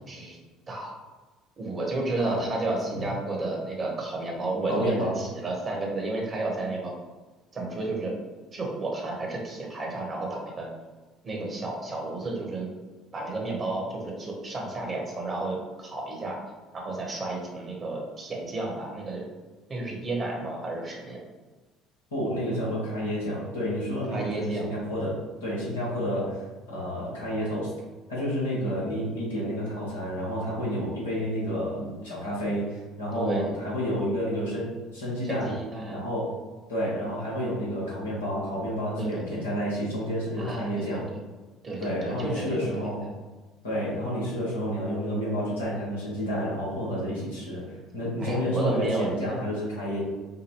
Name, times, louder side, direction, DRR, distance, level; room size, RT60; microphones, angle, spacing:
voice 1, 0.1-0.4 0.7-0.9 1.6-6.9 7.5-8.1 8.5-10.7 11.2-12.7 13.1-16.4 16.7-19.2 19.7-21.2 24.1-24.7 33.1-33.5 35.2-36.0 39.0-39.4 40.4-41.2 41.6-42.9 48.2-49.4, right 2 dB, 35° right, -1 dB, 1.2 m, -32 dB
voice 2, 4.7-5.2 22.1-27.7 28.1-35.5 35.9-36.4 36.7-41.1 41.8-43.0 43.6-50.0, equal, 85° left, -7 dB, 1.3 m, -30 dB
4.9 x 2.2 x 3.2 m, 1.2 s
hypercardioid pair, 60°, 0 cm